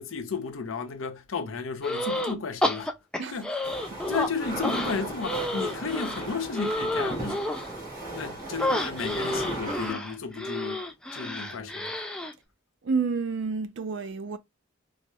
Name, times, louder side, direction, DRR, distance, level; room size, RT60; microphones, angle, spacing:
voice 1, 0.0-2.9 3.3-3.6 4.1-7.4 8.0-10.8 11.1-12.0, left 4 dB, 85° left, 0.6 m, -33 dB
sound 1, 1.8-2.3 2.6-4.3 4.6-7.7 8.6-12.3, left 1 dB, 5° left, 0.3 m, -30 dB
sound 2, 3.6-9.9, right 2 dB, 20° right, 1.6 m, -37 dB
voice 2, 12.8-14.4, right 4 dB, 65° right, 0.5 m, -29 dB
4.3 x 2.0 x 2.2 m
head